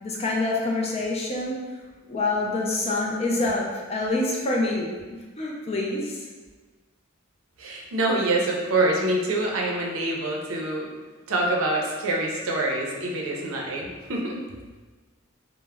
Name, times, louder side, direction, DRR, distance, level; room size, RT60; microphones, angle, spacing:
voice 1, 0.0-1.6 2.1-6.3, left 2 dB, 30° left, -2 dB, 0.4 m, -26 dB
voice 2, 7.6-10.9 11.3-14.4, right 2 dB, 85° right, -1 dB, 0.5 m, -25 dB
2.1 x 2.0 x 3.4 m, 1.3 s
head